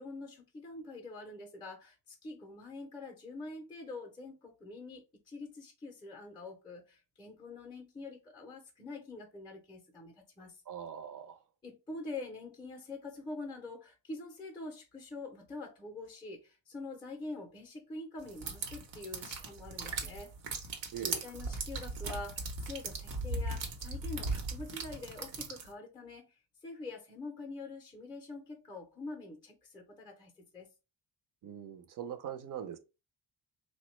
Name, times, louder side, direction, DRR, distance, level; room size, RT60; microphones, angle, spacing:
voice 1, 0.0-10.6 11.6-20.3 20.6-20.7 21.0-26.3 26.6-30.7, left 2 dB, 10° left, 0.4 m, -45 dB
voice 2, 10.7-11.4 20.9-21.2 31.4-32.8, right 9 dB, 50° right, 0.5 m, -41 dB
sound 1, 18.3-25.7, right 3 dB, 90° right, 0.9 m, -38 dB
3.4 x 2.1 x 3.0 m
wide cardioid pair, 165°, 44 cm